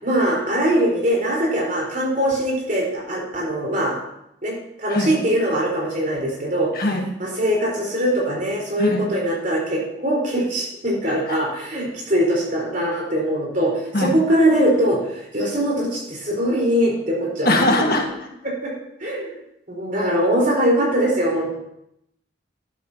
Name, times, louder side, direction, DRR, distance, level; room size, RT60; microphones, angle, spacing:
voice 1, 0.0-4.0 4.4-6.7 7.2-17.6 18.0-18.1 18.4-18.7 19.0-19.4 19.7-21.5, equal, 45° right, -3 dB, 4.3 m, -22 dB
voice 2, 17.4-18.0, left 1 dB, 55° left, 2 dB, 1.5 m, -20 dB
12.0 x 11.5 x 2.9 m, 0.80 s
head